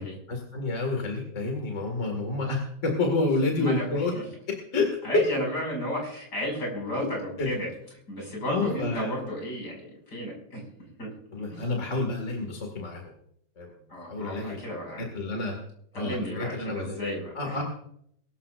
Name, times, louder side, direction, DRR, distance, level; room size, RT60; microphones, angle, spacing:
voice 1, 0.3-4.1 4.7-5.0 7.4-7.5 8.5-9.1 11.3-13.0 13.6-13.7 14.1-14.6 15.0-15.5 16.0-17.0 17.4-17.6, left 3 dB, 45° left, 1 dB, 2.4 m, -29 dB
voice 2, 5.0-7.7 8.1-10.6 11.0-11.1 11.5-11.7 13.9-15.1 15.9-17.6, equal, 70° left, -2 dB, 6.8 m, -33 dB
22.5 x 13.0 x 2.5 m, 0.71 s
omnidirectional pair, 1.9 m